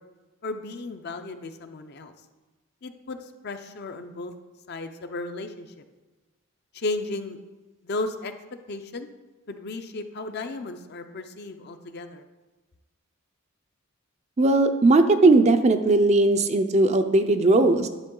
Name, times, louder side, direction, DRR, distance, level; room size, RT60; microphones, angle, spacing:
voice 1, 0.4-2.1 2.8-3.2 3.4-4.3 4.7-5.7 6.7-7.4 7.8-8.3 8.7-9.1 9.5-12.2, left 2 dB, 45° left, 8 dB, 0.5 m, -34 dB
voice 2, 14.4-17.9, right 2 dB, 30° right, 8 dB, 0.4 m, -18 dB
10.5 x 6.1 x 3.8 m, 1.2 s
head